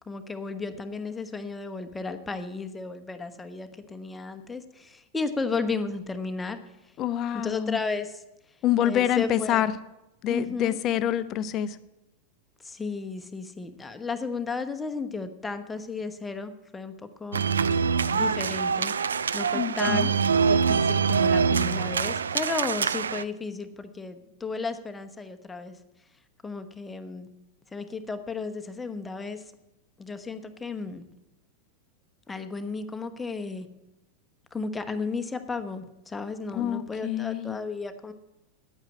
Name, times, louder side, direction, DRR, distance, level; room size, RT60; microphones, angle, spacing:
voice 1, 0.1-6.6 6.8-6.9 7.3-8.2 8.8-9.7 10.3-10.8 12.6-17.4 18.1-18.9 19.3-25.8 26.4-27.3 27.7-29.4 30.0-31.0 32.3-33.7 34.5-38.1, left 4 dB, 10° left, 8 dB, 1.1 m, -34 dB
voice 2, 7.0-7.8 8.6-9.7 10.2-11.8 19.5-20.1 36.5-37.6, left 11 dB, 35° left, 13 dB, 0.7 m, -26 dB
sound 1, 17.3-23.2, right 6 dB, 70° right, 0.4 m, -24 dB
9.5 x 8.8 x 9.7 m, 0.94 s
figure-of-eight pair, 90°, 0 cm